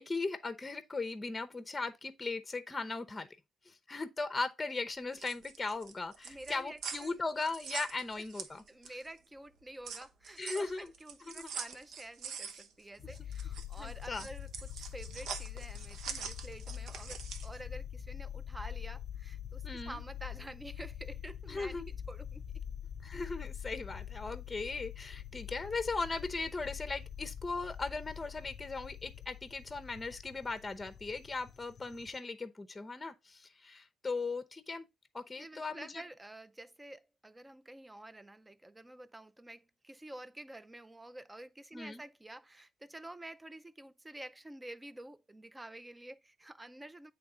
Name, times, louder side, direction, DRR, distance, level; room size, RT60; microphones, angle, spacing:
voice 1, 0.0-3.3 3.7-8.6 10.4-10.9 11.3-11.5 13.8-14.3 19.6-20.0 21.5-21.9 23.0-34.9 35.1-36.0 41.7-42.0, left 3 dB, 20° left, 0.7 m, -38 dB
sound 1, 5.0-9.1 9.5-17.6, right 6 dB, 75° right, 0.9 m, -44 dB
voice 2, 6.2-7.2 8.2-8.3 8.7-22.6 35.4-47.1, right 1 dB, 15° right, 0.5 m, -49 dB
sound 2, 13.0-32.2, left 9 dB, 60° left, 0.6 m, -45 dB
8.4 x 3.4 x 3.8 m
cardioid pair, 90°, 0 cm